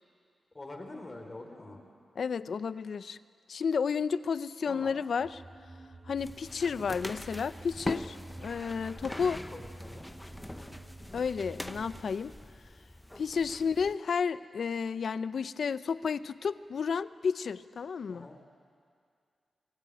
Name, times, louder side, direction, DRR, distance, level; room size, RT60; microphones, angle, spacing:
voice 1, 0.5-1.8 4.7-5.0 6.6-6.9 9.0-10.1 10.5-10.8 13.4-13.7 18.1-18.4, left 2 dB, 30° left, 3 dB, 3.3 m, -46 dB
voice 2, 2.2-3.2 3.5-5.4 6.1-9.4 11.1-12.3 13.2-18.3, left 6 dB, 70° left, 15 dB, 0.6 m, -32 dB
sound 1, 5.2-12.0, right 2 dB, 25° right, 1.7 m, -49 dB
sound 2, 6.2-13.9, left 1 dB, 10° left, 0.9 m, -43 dB
24.5 x 17.0 x 9.1 m, 2.2 s
wide cardioid pair, 95°, 0 cm